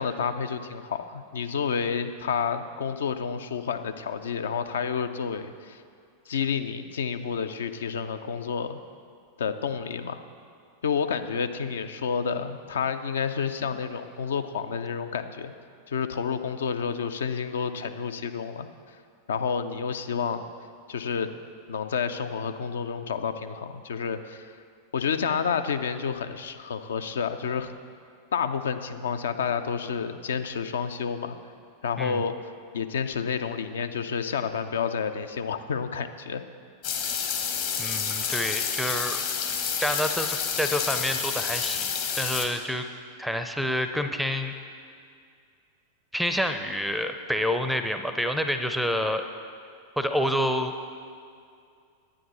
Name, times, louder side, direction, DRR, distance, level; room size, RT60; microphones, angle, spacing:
voice 1, 0.0-5.8 6.3-8.8 9.4-10.2 10.8-15.5 15.9-18.7 19.3-20.4 20.9-21.4 21.7-24.5 24.9-27.7 28.3-31.4 31.8-32.4 32.7-36.4, left 6 dB, 65° left, 9 dB, 0.5 m, -29 dB
sound 1, 36.8-42.5, left 7 dB, 50° left, 1.1 m, -29 dB
voice 2, 37.8-39.2 39.8-42.9 43.2-44.5 46.1-49.2 50.0-50.8, equal, ahead, 7 dB, 0.5 m, -28 dB
9.9 x 9.3 x 4.1 m, 2.3 s
figure-of-eight pair, 90°, 0 cm